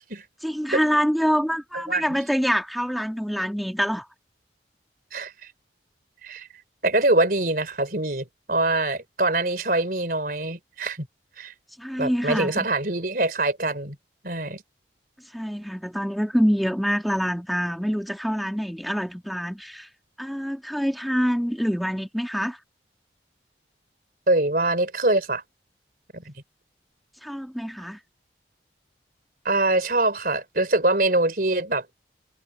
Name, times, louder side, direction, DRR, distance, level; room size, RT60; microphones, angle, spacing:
voice 1, 0.4-4.1 11.8-12.7 15.3-19.9 20.2-22.6 27.2-28.0, equal, ahead, 2.1 m, -25 dB
voice 2, 5.1-5.5 6.2-6.5 6.8-11.1 11.4-11.5 12.0-14.0 14.2-14.6 24.3-25.4 26.1-26.3 29.4-31.9, right 2 dB, 50° right, 4.1 m, -24 dB
head